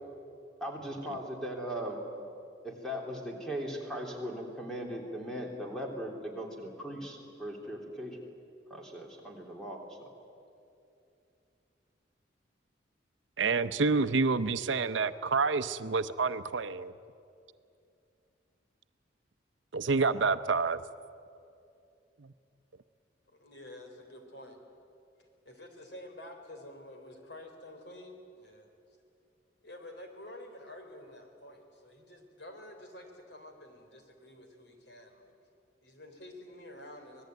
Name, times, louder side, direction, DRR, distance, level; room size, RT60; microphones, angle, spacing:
voice 1, 0.6-2.0 2.6-8.2 8.7-10.1, equal, 5° left, -1 dB, 3.4 m, -39 dB
voice 2, 13.4-16.9 19.7-20.8 22.2-22.3, right 4 dB, 80° right, 12 dB, 0.7 m, -28 dB
voice 3, 23.3-24.6 25.4-28.7 29.6-35.4 35.8-37.2, left 1 dB, 65° left, 4 dB, 3.8 m, -49 dB
25.5 x 19.5 x 9.3 m, 2.6 s
head